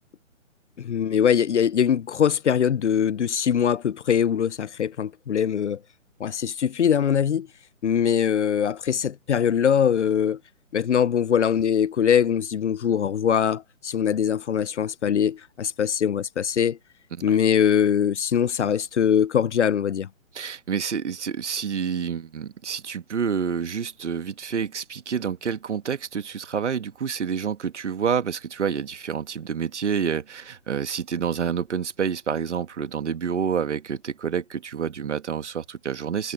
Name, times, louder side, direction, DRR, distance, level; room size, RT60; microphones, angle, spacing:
voice 1, 0.8-5.8 6.2-7.5 7.8-10.4 10.7-16.8 17.2-20.1, left 8 dB, 60° left, 0.7 m, -22 dB
voice 2, 20.3-36.3, right 7 dB, 60° right, 1.9 m, -28 dB
hypercardioid pair, 155°, 39 cm